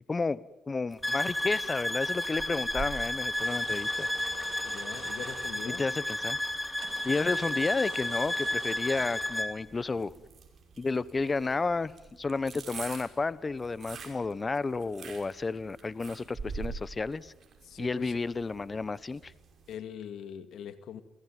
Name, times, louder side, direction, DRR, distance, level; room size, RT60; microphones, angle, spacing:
voice 1, 0.1-0.4 0.7-4.1 5.6-6.4 7.0-10.1 10.8-11.9 12.2-17.3 17.8-19.3, left 3 dB, 30° left, 18 dB, 1.0 m, -31 dB
sound 1, 0.9-19.8, right 5 dB, 50° right, 5.7 m, -47 dB
sound 2, 1.0-9.5, left 1 dB, 5° left, 2.8 m, -32 dB
sound 3, 3.3-5.7 6.8-9.2, right 6 dB, 80° right, 6.1 m, -47 dB
voice 2, 4.6-5.8 17.7-18.1 19.7-21.0, left 8 dB, 75° left, 11 dB, 2.3 m, -42 dB
29.0 x 17.5 x 9.3 m, 0.99 s
cardioid pair, 90°, 0 cm